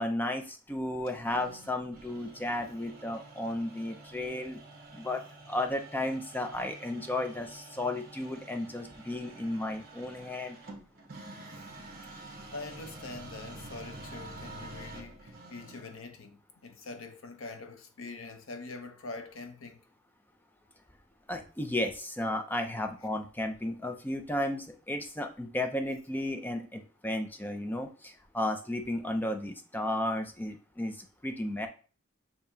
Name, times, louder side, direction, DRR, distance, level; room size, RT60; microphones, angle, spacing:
voice 1, 0.0-4.6 4.9-5.2 5.5-10.6 21.3-31.0 31.2-31.7, left 1 dB, 10° left, 0.4 m, -33 dB
sound 1, 1.0-16.0, right 2 dB, 45° right, 1.1 m, -48 dB
voice 2, 12.1-19.8, left 3 dB, 85° left, 0.7 m, -44 dB
6.8 x 2.8 x 2.7 m
head